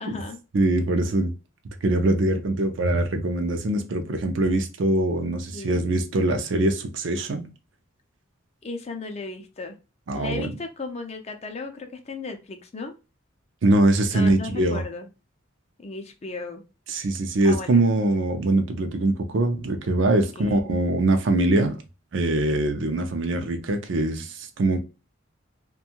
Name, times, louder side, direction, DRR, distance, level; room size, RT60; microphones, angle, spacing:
voice 1, 0.0-0.4 5.5-5.8 8.6-9.8 10.1-12.9 14.1-15.1 15.8-16.6 17.4-17.9 20.4-20.6, left 3 dB, 30° left, 0.4 m, -35 dB
voice 2, 0.5-1.3 1.8-7.5 10.1-10.5 13.6-14.8 16.9-21.8 22.1-24.8, right 2 dB, 65° right, 0.5 m, -23 dB
2.6 x 2.2 x 2.8 m
head